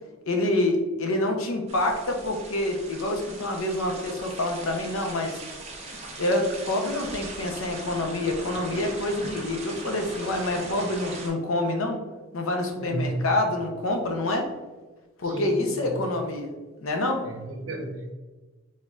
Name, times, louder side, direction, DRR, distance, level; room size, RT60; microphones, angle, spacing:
voice 1, 0.3-5.4 6.2-12.0 12.3-14.5 15.2-16.5 16.8-17.3, left 1 dB, 75° left, 3 dB, 0.7 m, -27 dB
sound 1, 1.7-11.3, right 2 dB, 30° right, 0.8 m, -40 dB
voice 2, 12.8-13.2 15.2-16.0 17.2-18.1, right 2 dB, 65° right, 2 dB, 0.9 m, -33 dB
4.3 x 3.6 x 2.4 m, 1.2 s
head